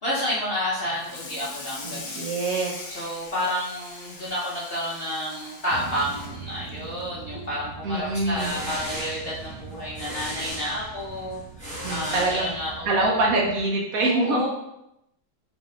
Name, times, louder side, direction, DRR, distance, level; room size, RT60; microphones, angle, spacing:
voice 1, 0.0-2.3 2.9-13.2 13.9-14.5, equal, 50° left, -8 dB, 0.7 m, -30 dB
Water tap faucet / Sink (filling or washing), 0.9-7.6 7.9-8.2 8.5-8.6 9.1-9.2 10.3-10.4 10.8-11.1, left 3 dB, 75° left, 1.3 m, -41 dB
voice 2, 1.8-2.7 7.8-8.6 11.8-12.5 12.9-14.5, right 2 dB, 65° right, -2 dB, 1.0 m, -24 dB
sound 1, 5.7-13.6, right 5 dB, 90° right, 1.4 m, -42 dB
sound 2, 8.1-13.0, equal, 5° left, 1.0 m, -37 dB
4.0 x 3.5 x 2.3 m, 0.84 s
omnidirectional pair, 1.8 m